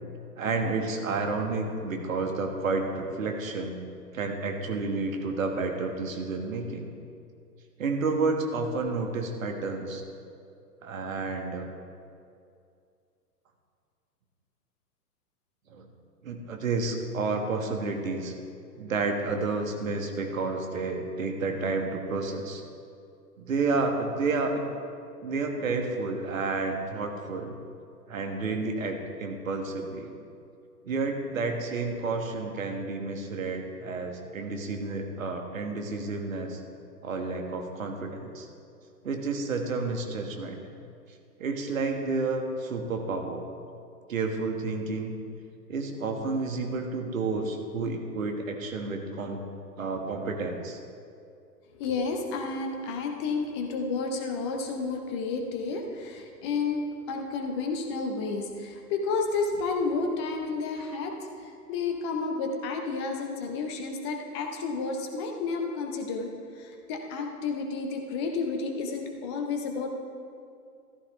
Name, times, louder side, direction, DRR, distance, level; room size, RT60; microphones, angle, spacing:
voice 1, 0.4-3.8 4.1-6.9 7.8-10.0 10.8-11.7 15.7-15.8 16.2-18.3 18.8-22.6 23.4-24.6 25.2-27.5 28.1-30.1 30.8-36.6 37.0-38.5 39.0-40.6 41.4-43.4 44.1-45.2 45.7-49.4 49.8-50.8, right 3 dB, 55° right, 3 dB, 1.6 m, -30 dB
voice 2, 51.7-69.9, left 4 dB, 15° left, 4 dB, 0.6 m, -31 dB
14.0 x 12.5 x 3.2 m, 2.4 s
figure-of-eight pair, 115°, 48 cm